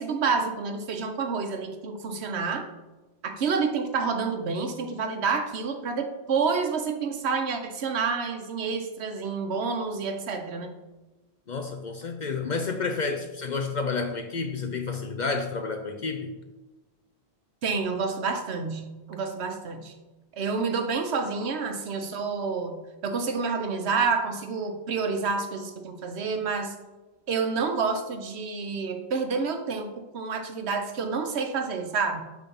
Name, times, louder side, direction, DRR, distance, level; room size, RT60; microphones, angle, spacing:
voice 1, 0.0-2.6 3.2-10.7 17.6-19.9 20.3-26.7 27.3-32.2, right 5 dB, 75° right, 6 dB, 1.0 m, -29 dB
voice 2, 11.5-16.3, left 4 dB, 55° left, 5 dB, 0.6 m, -30 dB
7.0 x 3.6 x 5.3 m, 1.1 s
omnidirectional pair, 1.1 m